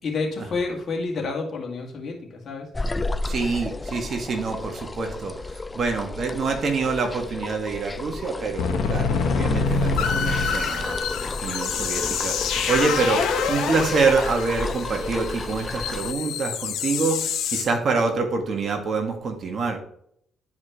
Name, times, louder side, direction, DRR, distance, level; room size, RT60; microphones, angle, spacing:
voice 1, 0.0-2.7, left 3 dB, 50° left, 1 dB, 2.0 m, -29 dB
sound 1, 2.7-16.1, left 2 dB, 20° left, 0.3 m, -33 dB
voice 2, 3.2-5.3 5.7-17.2 17.5-19.8, right 4 dB, 50° right, 4 dB, 1.6 m, -26 dB
sound 2, 7.8-7.9 8.3-8.4 8.6-17.6, left 5 dB, 85° left, 1.0 m, -26 dB
10.5 x 4.9 x 3.0 m, 0.68 s
cardioid pair, 90°, 0 cm